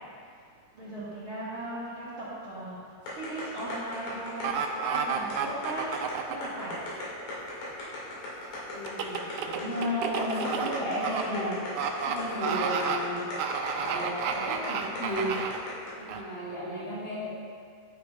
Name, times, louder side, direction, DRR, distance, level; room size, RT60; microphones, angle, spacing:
voice 1, 0.7-2.1 2.4-2.8 3.1-4.5 4.9-5.8 6.3-6.7, right 1 dB, 50° right, -10 dB, 1.7 m, -38 dB
sound 1, 3.1-15.9, left 2 dB, 85° left, 3.9 m, -38 dB
sound 2, 4.4-6.5 8.9-11.2 11.8-12.2 12.4-13.0 13.4-15.6 16.1-16.2, right 7 dB, 85° right, 1.7 m, -30 dB
voice 2, 8.7-11.6 12.1-13.2 13.7-15.4 16.0-17.3, left 1 dB, 65° left, -8 dB, 3.7 m, -34 dB
11.5 x 9.2 x 2.4 m, 2.2 s
omnidirectional pair, 4.0 m